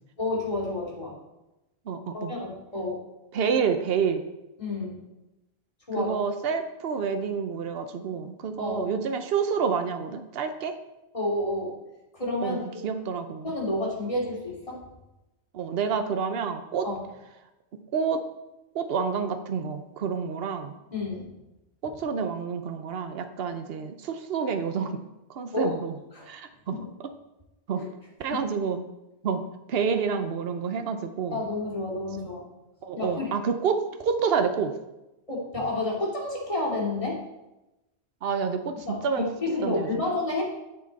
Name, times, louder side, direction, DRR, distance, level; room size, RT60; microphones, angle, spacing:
voice 1, 0.2-1.2 2.1-3.0 4.6-5.0 5.9-6.2 8.6-8.8 11.1-11.7 12.1-12.6 13.4-14.8 16.8-17.0 20.9-21.3 25.5-25.8 26.1-26.3 26.7-26.8 27.8-27.9 31.3-32.4 32.9-33.4 35.3-37.2 38.7-40.4, left 2 dB, 30° left, -4 dB, 2.7 m, -30 dB
voice 2, 1.9-2.4 3.3-4.2 6.0-10.8 12.4-12.6 12.8-13.5 15.5-16.9 17.9-18.2 18.7-20.7 21.8-25.0 25.3-25.9 26.3-26.8 27.7-27.8 28.2-28.8 29.2-29.4 29.7-31.4 32.2-32.3 32.8-34.7 38.2-39.3 39.6-39.9, right 6 dB, 65° right, 8 dB, 1.0 m, -28 dB
9.8 x 7.6 x 4.1 m, 0.96 s
omnidirectional pair, 1.1 m